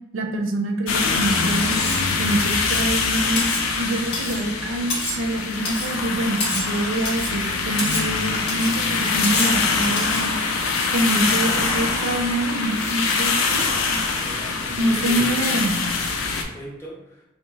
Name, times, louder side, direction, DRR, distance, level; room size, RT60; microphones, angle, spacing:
voice 1, 0.1-1.8 2.2-3.5 3.8-10.3 10.9-13.7 14.8-15.9, right 1 dB, 80° right, 4 dB, 0.4 m, -25 dB
sound 1, 0.9-16.4, left 4 dB, 90° left, 0.4 m, -24 dB
Cutlery silverware, 1.7-2.1 2.5-2.9 3.4-3.7 4.1-4.4 4.9-5.3 5.7-5.9 6.4-6.8 7.1-7.4 7.8-8.1 8.5-8.8 9.2-9.6 10.0-10.3, left 2 dB, 60° left, 0.7 m, -28 dB
voice 2, 14.2-15.5 16.3-17.2, equal, 15° left, -5 dB, 0.5 m, -39 dB
2.7 x 2.0 x 2.8 m, 0.99 s
head